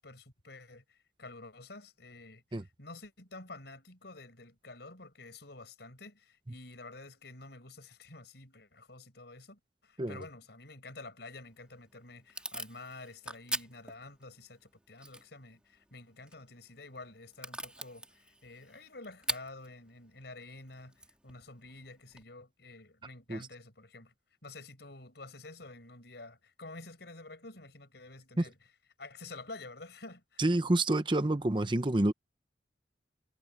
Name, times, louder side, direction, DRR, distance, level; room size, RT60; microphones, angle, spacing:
voice 1, 0.0-24.1 24.4-28.6 29.0-30.4, left 2 dB, 65° left, 5.1 m, -49 dB
Packing tape duct tape / Tearing, 11.4-22.2, right 1 dB, 5° right, 1.9 m, -45 dB
voice 2, 30.4-32.1, right 1 dB, 25° right, 0.8 m, -28 dB
head